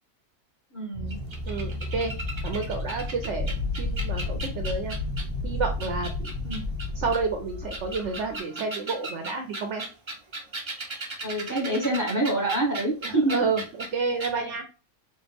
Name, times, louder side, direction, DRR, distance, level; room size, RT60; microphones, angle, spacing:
voice 1, 0.7-1.2 6.4-6.7 11.2-13.4 14.3-14.5, right 1 dB, 15° left, -1 dB, 1.0 m, -27 dB
sound 1, 0.9-7.2, left 1 dB, 20° right, 0.9 m, -35 dB
sound 2, 1.1-5.4 5.8-7.2 7.6-13.9 14.2-14.3, right 2 dB, 45° right, 0.3 m, -37 dB
voice 2, 1.5-2.1 2.4-3.5 3.8-5.0 5.4-6.3 7.0-9.8 13.0-13.6 13.9-14.6, right 4 dB, 65° right, 5 dB, 0.8 m, -30 dB
sound 3, 3.4-8.4, left 3 dB, 80° left, 0.5 m, -33 dB
4.3 x 2.4 x 3.3 m, 0.33 s
omnidirectional pair, 1.5 m